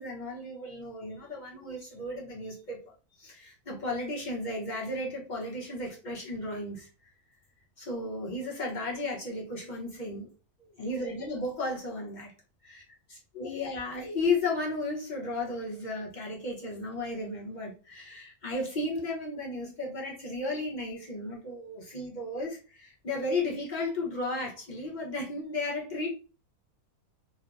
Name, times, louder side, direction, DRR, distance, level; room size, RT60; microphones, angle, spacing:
voice 1, 0.0-2.8 3.2-6.9 7.8-10.3 10.6-12.3 12.6-12.8 13.1-26.1, left 2 dB, 35° left, -4 dB, 0.8 m, -34 dB
3.3 x 2.1 x 2.4 m, 0.34 s
omnidirectional pair, 1.6 m